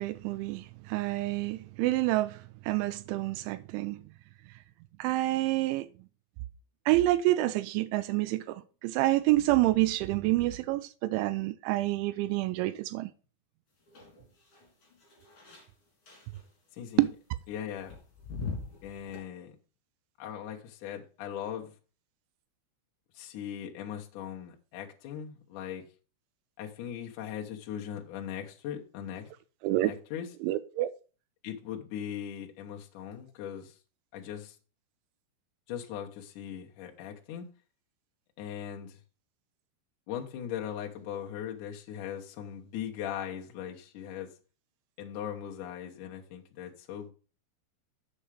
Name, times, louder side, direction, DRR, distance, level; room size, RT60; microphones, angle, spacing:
voice 1, 0.0-2.4 2.6-4.0 5.0-5.9 6.9-13.1 17.0-17.1 29.6-29.9 30.4-30.9, right 17 dB, 85° right, 2.9 m, -28 dB
sound 1, 13.9-15.7 16.1-16.4 17.8-19.2, left 4 dB, 30° left, 3.9 m, -42 dB
voice 2, 16.7-17.1 17.5-18.0 18.5-19.6 20.2-21.7 23.1-25.9 26.6-29.3 29.8-30.3 31.4-33.8 34.1-34.6 35.7-37.5 38.4-39.0 40.1-44.3 45.0-47.1, left 9 dB, 70° left, 2.0 m, -39 dB
7.3 x 7.1 x 5.0 m
omnidirectional pair, 5.4 m